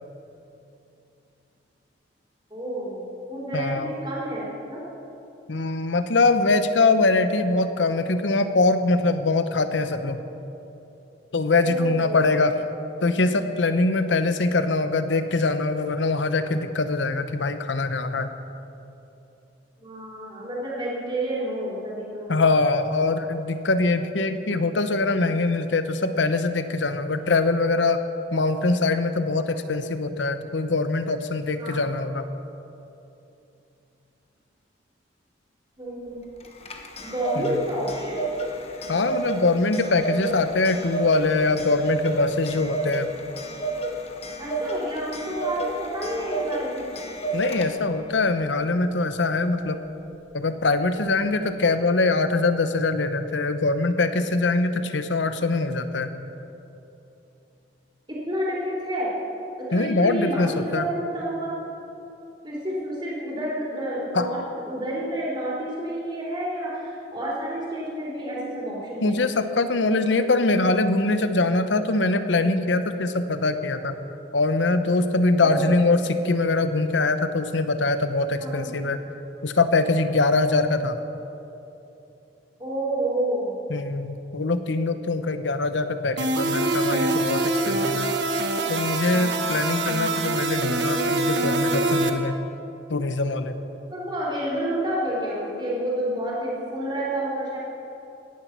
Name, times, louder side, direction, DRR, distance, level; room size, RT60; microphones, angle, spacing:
voice 1, 2.5-4.8 11.5-12.2 19.8-22.3 31.6-31.8 35.8-36.2 37.0-38.3 44.4-46.8 58.1-59.1 59.6-61.5 62.4-64.4 64.7-69.2 75.4-75.7 78.4-78.8 82.6-83.6 93.9-97.6, right 1 dB, 25° right, -6 dB, 3.6 m, -29 dB
voice 2, 3.5-3.9 5.5-10.2 11.3-12.6 13.0-18.3 22.3-28.0 28.3-32.3 37.4-37.6 38.9-43.1 47.3-49.8 50.3-56.1 59.7-60.9 64.1-64.3 69.0-73.9 74.3-79.0 79.4-81.0 83.7-88.1 88.7-92.4 92.9-93.5, left 3 dB, 80° left, 10 dB, 0.8 m, -23 dB
Clock, 36.4-48.0, right 2 dB, 35° left, 1.1 m, -31 dB
sound 1, 86.2-92.1, right 2 dB, 70° right, 1.1 m, -24 dB
17.0 x 10.5 x 6.0 m, 2.9 s
head